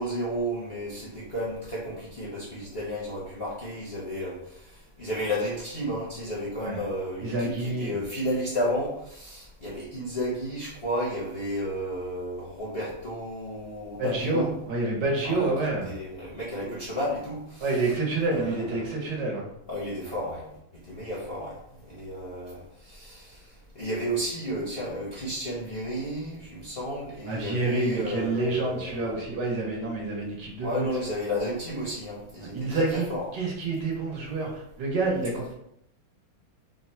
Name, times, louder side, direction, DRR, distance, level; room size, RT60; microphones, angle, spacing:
voice 1, 0.0-4.6 5.0-14.5 15.3-15.5 15.9-17.6 18.3-18.8 19.7-20.4 20.9-21.6 21.8-23.4 23.7-29.0 30.6-33.2, equal, 45° left, -7 dB, 0.8 m, -32 dB
voice 2, 7.2-8.0 14.0-16.0 16.6-16.7 17.6-19.5 27.3-30.9 32.5-35.5, right 2 dB, 65° right, -2 dB, 1.5 m, -28 dB
3.7 x 2.3 x 4.2 m, 0.78 s
omnidirectional pair, 2.2 m